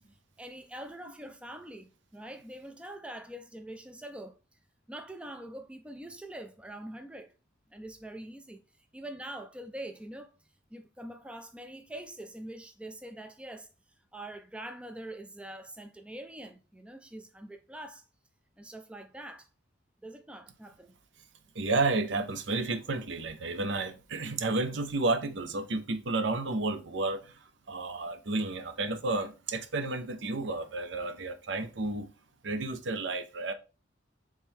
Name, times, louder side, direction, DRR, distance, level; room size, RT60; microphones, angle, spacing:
voice 1, 0.4-4.4 4.9-7.3 7.7-8.6 8.9-10.3 10.7-13.7 14.1-18.1 18.6-19.5 20.0-20.9, right 1 dB, 5° right, 0.3 m, -44 dB
voice 2, 21.5-27.4 27.7-32.1 32.4-33.5, right 3 dB, 65° right, 0.6 m, -31 dB
3.6 x 3.2 x 4.3 m
head